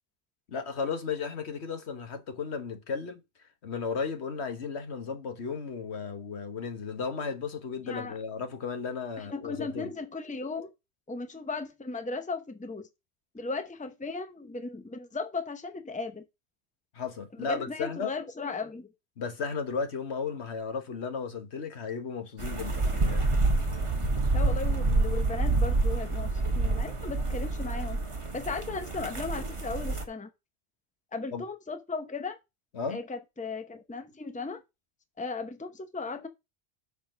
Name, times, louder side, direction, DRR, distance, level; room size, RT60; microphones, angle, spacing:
voice 1, 0.5-3.2 3.6-9.9 16.9-18.1 19.2-23.2 31.3-31.4 32.7-33.0, left 5 dB, 85° left, 1.6 m, -34 dB
voice 2, 7.9-8.2 9.2-10.7 11.1-12.9 13.3-16.2 17.4-18.9 24.3-28.0 28.3-30.3 31.1-32.4 32.9-34.6 35.2-36.3, left 4 dB, 10° left, 0.7 m, -36 dB
sound 1, 22.4-30.0, right 2 dB, 30° right, 1.3 m, -28 dB
6.6 x 4.2 x 6.5 m
omnidirectional pair, 1.1 m